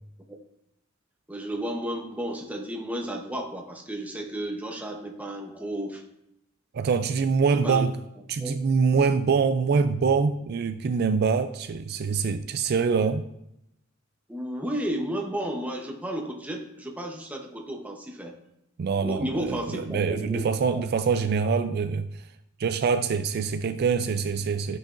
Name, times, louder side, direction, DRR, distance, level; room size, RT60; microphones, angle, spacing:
voice 1, 1.3-6.0 7.6-7.8 8.4-8.5 14.3-18.4 19.0-20.8, equal, 10° right, 1 dB, 0.9 m, -33 dB
voice 2, 6.7-7.9 8.3-13.2 18.8-22.3 22.6-24.8, right 5 dB, 55° right, 9 dB, 0.3 m, -24 dB
11.5 x 6.1 x 2.5 m, 0.83 s
head